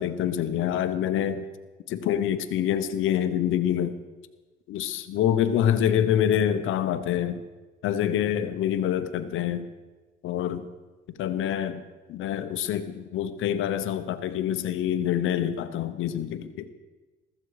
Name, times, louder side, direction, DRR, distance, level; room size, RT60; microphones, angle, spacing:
voice 1, 0.0-1.4 1.9-4.0 4.7-7.4 7.8-9.7 10.2-10.6 11.2-11.8 12.1-16.7, left 10 dB, 85° left, 11 dB, 0.9 m, -26 dB
15.0 x 14.0 x 4.9 m, 1.2 s
cardioid pair, 90°, 20 cm